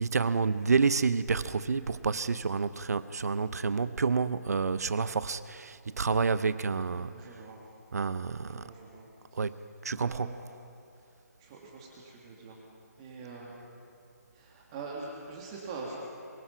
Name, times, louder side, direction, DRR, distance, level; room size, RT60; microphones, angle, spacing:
voice 1, 0.0-7.4 7.9-8.7 9.3-10.4, right 5 dB, 65° right, 0.7 m, -29 dB
voice 2, 6.8-7.6 8.5-9.4 10.0-10.5 11.4-12.6 13.0-13.5 14.3-16.0, right 4 dB, 20° right, 2.2 m, -44 dB
23.0 x 20.0 x 5.7 m
hypercardioid pair, 170°, 9 cm